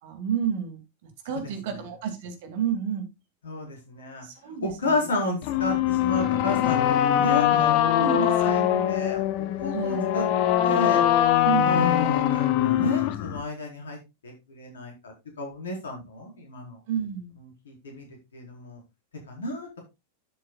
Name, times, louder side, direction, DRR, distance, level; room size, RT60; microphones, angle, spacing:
voice 1, 0.0-3.0 4.2-5.1 7.8-9.0 9.7-10.1 11.4-11.9 16.9-17.4, right 7 dB, 50° right, 6 dB, 2.5 m, -31 dB
voice 2, 3.5-4.3 4.6-8.6 8.9-10.2 10.6-11.0 11.6-14.0 14.2-16.8 17.7-18.1 18.3-18.8 19.3-19.8, left 2 dB, 65° left, 1 dB, 4.7 m, -32 dB
sound 1, 5.4-13.4, left 11 dB, 45° left, 1.1 m, -22 dB
12.0 x 7.7 x 2.4 m, 0.23 s
figure-of-eight pair, 90°, 0 cm